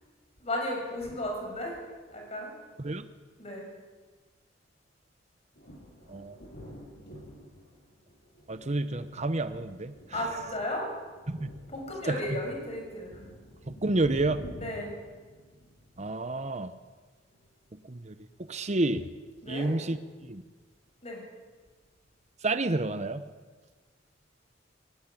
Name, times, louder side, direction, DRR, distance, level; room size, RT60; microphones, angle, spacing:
voice 1, 0.4-1.8 2.1-2.5 3.4-3.7 10.1-10.9 11.7-13.3 14.6-15.0 19.4-19.7 21.0-21.2, left 1 dB, 35° left, 1 dB, 6.9 m, -34 dB
sound 1, 5.6-16.9 17.3-17.8 18.5-18.6 18.9-19.3, equal, 55° left, 7.6 m, -49 dB
voice 2, 8.5-10.5 11.3-11.5 12.1-12.4 13.7-14.4 16.0-16.7 17.8-19.1 19.5-20.4 22.4-23.2, right 2 dB, 35° right, 11 dB, 0.9 m, -30 dB
19.0 x 18.0 x 8.5 m, 1.4 s
head